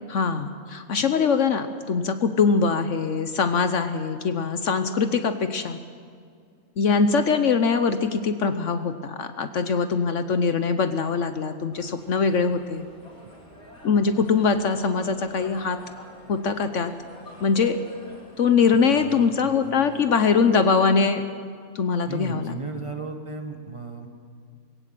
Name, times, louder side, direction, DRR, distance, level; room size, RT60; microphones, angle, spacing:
voice 1, 0.1-5.8 6.8-12.9 13.8-15.8 16.3-16.9 17.4-17.8 18.4-21.2 21.7-22.6, left 5 dB, 60° left, 9 dB, 1.1 m, -22 dB
sound 1, 11.7-20.5, left 1 dB, 85° left, 4.6 m, -47 dB
voice 2, 18.9-19.6 22.0-24.1, right 3 dB, 20° right, 4 dB, 1.7 m, -35 dB
20.5 x 17.5 x 7.7 m, 2.2 s
omnidirectional pair, 1.5 m